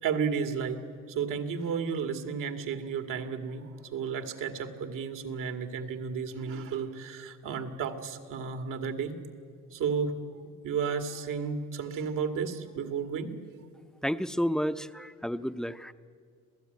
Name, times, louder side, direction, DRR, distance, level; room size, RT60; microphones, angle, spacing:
voice 1, 0.0-0.8 1.1-9.2 9.7-10.1 10.6-13.3, right 6 dB, 75° right, 7 dB, 2.3 m, -32 dB
voice 2, 14.0-15.9, equal, ahead, 11 dB, 0.6 m, -31 dB
26.5 x 17.5 x 9.3 m, 2.2 s
cardioid pair, 125°, 32 cm